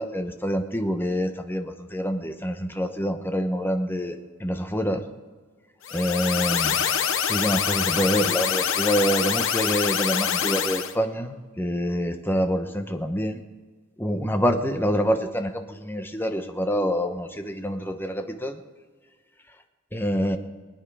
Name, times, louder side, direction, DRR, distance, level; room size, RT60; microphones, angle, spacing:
voice 1, 0.0-5.0 5.9-6.8 7.3-13.4 14.0-18.6 19.9-20.4, equal, 10° left, 6 dB, 1.1 m, -26 dB
sound 1, 5.8-10.9, left 8 dB, 65° left, 0.9 m, -25 dB
23.0 x 9.4 x 4.9 m, 1.4 s
head